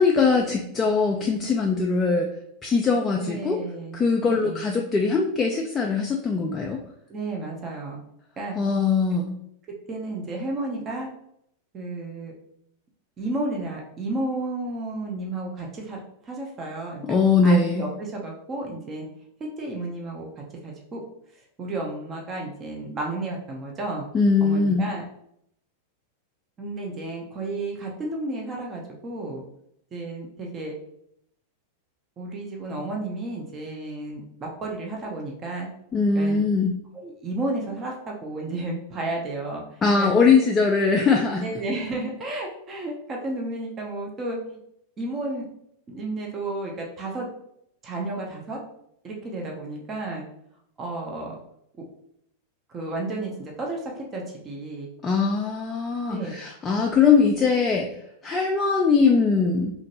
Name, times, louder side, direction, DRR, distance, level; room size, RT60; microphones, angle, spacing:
voice 1, 0.0-2.3 2.6-3.6 3.9-6.8 8.6-9.3 17.1-17.9 24.1-24.9 35.9-36.7 39.8-41.5 55.0-57.9 58.2-59.7, left 4 dB, 20° left, 1 dB, 0.3 m, -21 dB
voice 2, 3.2-4.6 7.1-8.0 8.4-8.6 9.9-11.1 11.7-12.3 13.2-17.2 17.4-19.1 19.4-20.3 20.6-21.0 21.6-24.1 24.4-25.0 26.6-29.4 29.9-30.8 32.2-35.7 36.1-36.4 36.9-40.1 41.4-44.6 45.0-45.5 45.9-47.3 47.8-48.6 49.0-50.3 50.8-51.4 52.7-54.9 56.1-56.3, right 2 dB, 25° right, 0 dB, 0.6 m, -32 dB
2.9 x 2.5 x 2.7 m, 0.74 s
figure-of-eight pair, 90°, 0 cm